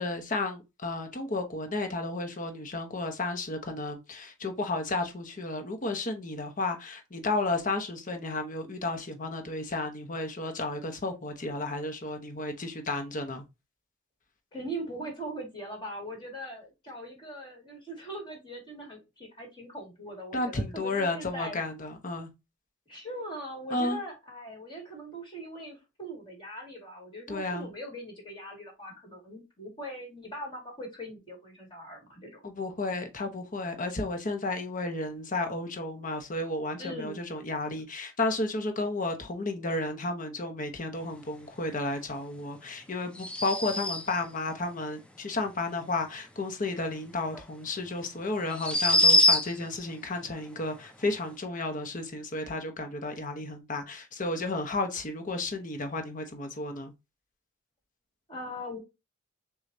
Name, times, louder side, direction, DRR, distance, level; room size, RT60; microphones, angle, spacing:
voice 1, 0.0-13.5 20.3-22.3 23.7-24.0 27.3-27.7 32.4-56.9, left 2 dB, 40° left, 0.9 m, -32 dB
voice 2, 14.5-21.6 22.9-32.4 36.8-37.2 58.3-58.8, right 1 dB, 25° left, 2.0 m, -41 dB
sound 1, 43.2-44.3 47.3-47.4 48.5-49.8, left 1 dB, 5° left, 0.5 m, -24 dB
6.3 x 2.4 x 2.7 m
head